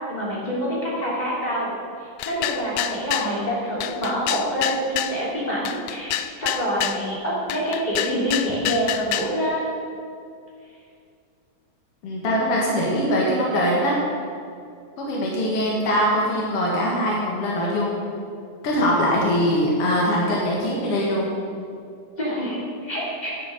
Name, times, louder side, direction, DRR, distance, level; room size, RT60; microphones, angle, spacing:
voice 1, 0.1-1.8 2.2-9.7 22.2-23.3, equal, 15° left, -6 dB, 3.1 m, -26 dB
sound 1, 2.2-3.3 3.8-5.2 5.7-7.0 7.5-9.3, left 12 dB, 90° left, 1.6 m, -27 dB
voice 2, 12.0-14.0 15.0-18.0 18.6-21.3, equal, 50° left, -4 dB, 2.4 m, -22 dB
10.5 x 8.8 x 6.7 m, 2.4 s
omnidirectional pair, 3.7 m